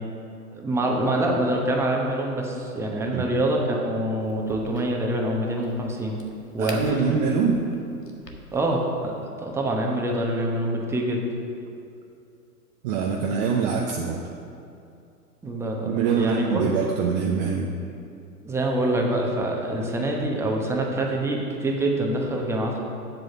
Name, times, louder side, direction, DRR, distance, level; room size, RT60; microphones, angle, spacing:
voice 1, 0.5-6.2 6.5-7.1 8.5-9.1 9.4-11.2 15.4-16.6 18.4-22.8, right 1 dB, 5° right, 0 dB, 1.0 m, -25 dB
Crack, 4.2-9.3, left 2 dB, 90° left, 1.4 m, -46 dB
voice 2, 6.6-7.6 12.8-14.2 15.8-17.7, right 6 dB, 25° right, 1 dB, 0.6 m, -24 dB
7.8 x 7.7 x 6.8 m, 2.6 s
figure-of-eight pair, 115°, 47 cm